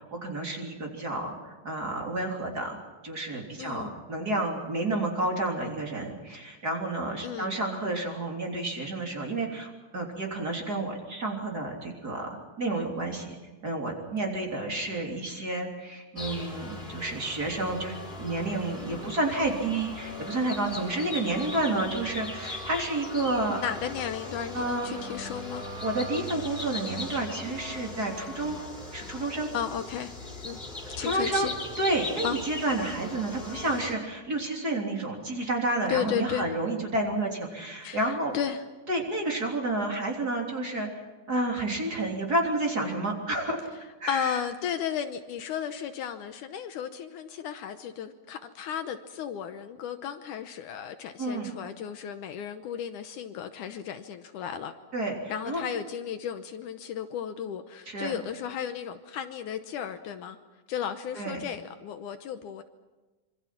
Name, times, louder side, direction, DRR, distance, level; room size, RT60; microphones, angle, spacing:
voice 1, 0.0-2.8 3.0-12.3 12.6-13.4 13.6-23.6 24.5-24.9 25.8-28.6 28.9-29.5 31.0-31.5 31.8-38.3 38.9-41.0 41.3-43.6 44.0-44.3 51.2-51.5 54.9-55.2 55.5-55.6 57.9-58.1 61.2-61.4, right 2 dB, 30° right, 0 dB, 3.7 m, -30 dB
voice 2, 3.6-4.0 7.2-7.6 18.8-19.1 23.6-25.6 29.5-30.2 30.4-30.6 31.0-31.5 32.2-32.4 35.9-36.5 37.8-38.6 44.1-54.7 55.3-60.4 60.7-62.6, left 8 dB, 75° left, 8 dB, 2.3 m, -34 dB
sound 1, 16.2-33.9, left 2 dB, 15° left, 4.1 m, -39 dB
26.0 x 25.0 x 6.0 m, 1.2 s
omnidirectional pair, 3.9 m